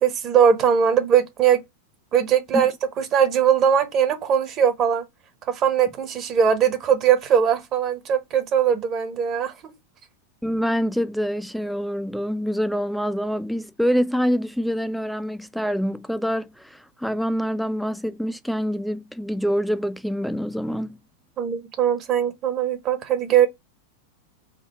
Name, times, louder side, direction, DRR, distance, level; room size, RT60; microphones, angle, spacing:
voice 1, 0.0-1.6 2.1-5.0 5.5-9.7 21.4-23.5, right 8 dB, 35° right, 0.9 m, -20 dB
voice 2, 10.4-21.0, equal, ahead, 0.4 m, -25 dB
5.0 x 2.0 x 4.4 m
figure-of-eight pair, 90°, 0 cm